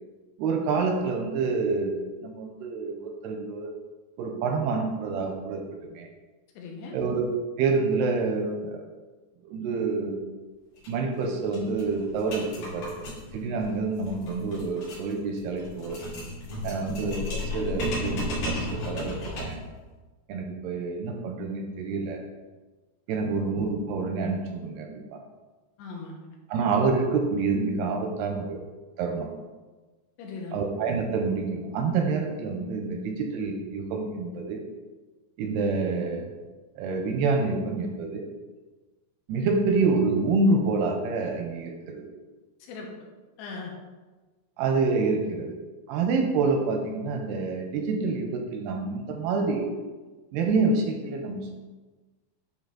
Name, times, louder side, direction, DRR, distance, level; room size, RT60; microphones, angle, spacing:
voice 1, 0.4-3.7 4.2-5.6 5.9-6.1 6.9-7.2 7.6-8.8 9.4-10.3 10.9-13.0 13.3-16.0 16.6-19.6 20.3-22.2 23.1-25.2 26.5-28.6 29.0-29.3 30.5-34.6 35.4-36.3 36.8-38.2 39.3-42.1 44.6-45.6 45.9-49.7 50.3-51.6, right 4 dB, 85° right, 3 dB, 2.5 m, -27 dB
voice 2, 6.6-7.0 16.8-17.0 23.2-23.3 25.8-26.2 30.2-30.6 42.6-42.9 43.4-43.7, left 4 dB, 80° left, 0 dB, 3.0 m, -39 dB
sound 1, 10.8-10.9 11.2-11.3 11.5-19.7, left 1 dB, 55° left, 3.9 m, -34 dB
9.8 x 3.8 x 3.9 m, 1.3 s
omnidirectional pair, 5.0 m